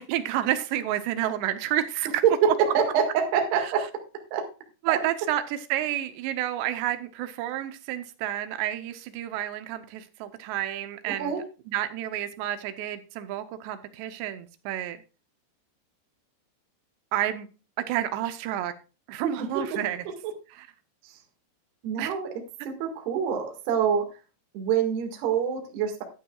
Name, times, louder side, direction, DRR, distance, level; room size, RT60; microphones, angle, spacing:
voice 1, 0.0-2.5 3.5-3.6 4.8-11.3 11.7-15.0 17.1-17.5 17.9-18.7 19.1-20.1 20.6-20.7 22.0-22.1, right 12 dB, 85° right, 2.5 m, -30 dB
voice 2, 2.2-3.9 4.3-4.5 4.9-5.0 11.1-11.4 19.2-19.8 20.2-20.3 21.0-21.2 21.8-22.3 22.6-24.1 24.5-26.0, right 7 dB, 60° right, 3.5 m, -26 dB
12.5 x 12.0 x 2.3 m
omnidirectional pair, 5.8 m